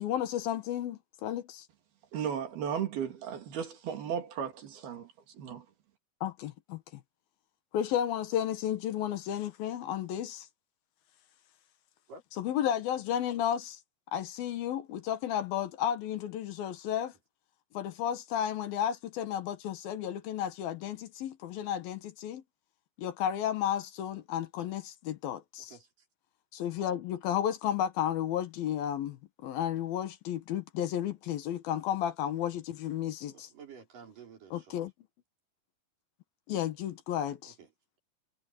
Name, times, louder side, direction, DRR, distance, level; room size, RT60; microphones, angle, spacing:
voice 1, 0.0-1.6 6.2-6.8 7.7-10.5 12.4-13.8 14.1-17.1 17.7-22.4 23.0-25.8 26.5-29.2 29.4-33.5 34.5-34.9 36.5-37.5, left 10 dB, 75° left, 3.2 m, -33 dB
voice 2, 2.1-5.7, right 8 dB, 90° right, 4.8 m, -35 dB
voice 3, 33.2-34.8 37.6-37.7, right 5 dB, 60° right, 6.5 m, -51 dB
omnidirectional pair, 4.3 m